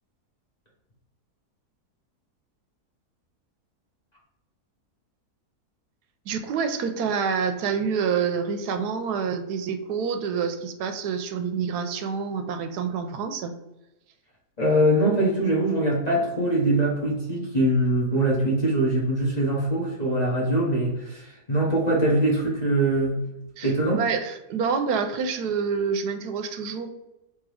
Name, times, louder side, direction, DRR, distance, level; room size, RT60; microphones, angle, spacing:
voice 1, 6.3-13.5 23.6-23.7 24.0-26.9, right 6 dB, 90° right, 7 dB, 1.1 m, -27 dB
voice 2, 14.6-23.2 23.6-24.0, right 1 dB, 30° left, -4 dB, 1.0 m, -23 dB
3.6 x 2.9 x 4.7 m, 0.93 s
omnidirectional pair, 1.7 m